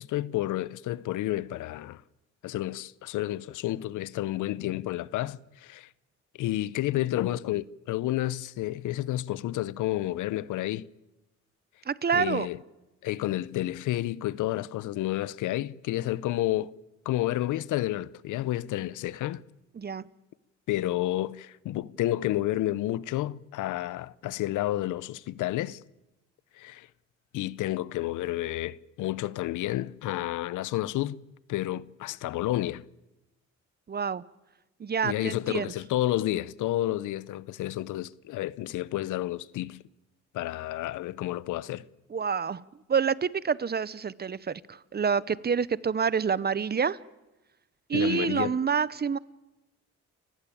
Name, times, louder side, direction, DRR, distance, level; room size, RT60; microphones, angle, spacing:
voice 1, 0.0-2.0 2.4-5.9 6.4-10.9 12.1-12.6 13.0-16.7 17.0-19.4 20.7-25.8 26.6-26.9 27.3-31.2 31.5-32.8 35.0-39.8 40.3-41.8 47.9-48.6, left 15 dB, 85° left, 0.8 m, -30 dB
voice 2, 11.9-12.5 19.8-20.0 33.9-34.2 34.8-35.7 42.1-42.6 42.9-47.0 47.9-49.2, right 6 dB, 35° right, 0.9 m, -27 dB
29.0 x 16.0 x 8.6 m
cardioid pair, 90°, 30 cm